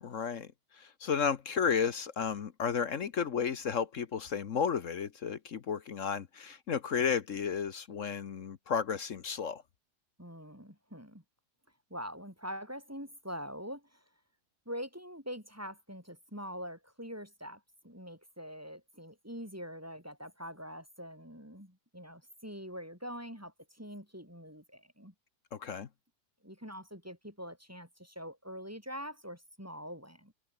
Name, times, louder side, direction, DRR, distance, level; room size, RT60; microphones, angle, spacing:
voice 1, 0.0-9.6 25.5-25.9, left 6 dB, 55° left, 1.3 m, -33 dB
voice 2, 10.2-11.2 11.9-14.0 14.7-25.1 26.4-30.3, equal, 10° right, 6.3 m, -44 dB
omnidirectional pair, 1.7 m